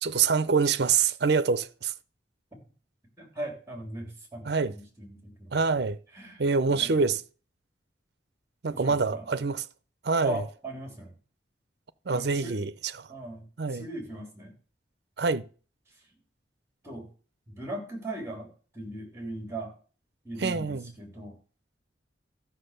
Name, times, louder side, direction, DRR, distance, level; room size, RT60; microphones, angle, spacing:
voice 1, 0.0-1.9 4.5-4.7 5.5-6.0 6.4-7.2 8.6-9.6 10.0-10.4 12.1-12.7 13.0-13.1 13.6-13.9 15.2-15.5 20.4-20.8, right 5 dB, 60° right, 0.6 m, -25 dB
voice 2, 3.2-5.6 6.1-6.4 6.7-7.0 8.7-9.3 10.2-11.1 12.1-12.6 13.1-13.4 13.7-14.5 15.9-16.0 16.8-17.1 17.5-19.7 20.2-21.4, right 1 dB, 15° right, 3.3 m, -39 dB
13.5 x 6.2 x 6.7 m
head